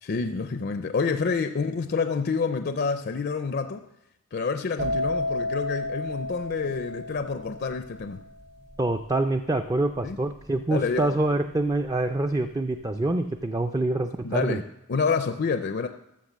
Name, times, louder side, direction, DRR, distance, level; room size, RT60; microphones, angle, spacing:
voice 1, 0.0-3.8 4.3-8.2 10.0-10.2 10.7-11.2 14.2-14.6 14.9-15.9, left 4 dB, 45° left, 8 dB, 0.4 m, -28 dB
sound 1, 4.8-12.4 12.6-13.1, left 1 dB, 75° right, 3.8 m, -33 dB
voice 2, 8.8-14.6, right 2 dB, 15° right, 6 dB, 0.3 m, -26 dB
13.0 x 6.2 x 7.2 m, 0.85 s
head